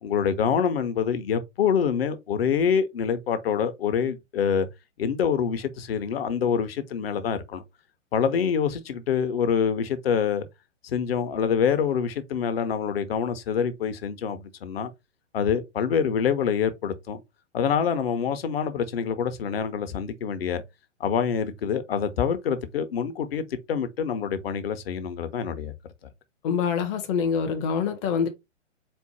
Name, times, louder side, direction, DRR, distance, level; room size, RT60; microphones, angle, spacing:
voice 1, 0.0-4.7 5.0-7.6 8.1-10.5 10.8-14.9 15.3-17.2 17.5-20.6 21.0-25.7, left 7 dB, 55° left, 0.8 m, -26 dB
voice 2, 26.4-28.3, left 6 dB, 25° left, 0.6 m, -25 dB
4.4 x 2.1 x 4.2 m
figure-of-eight pair, 120°, 37 cm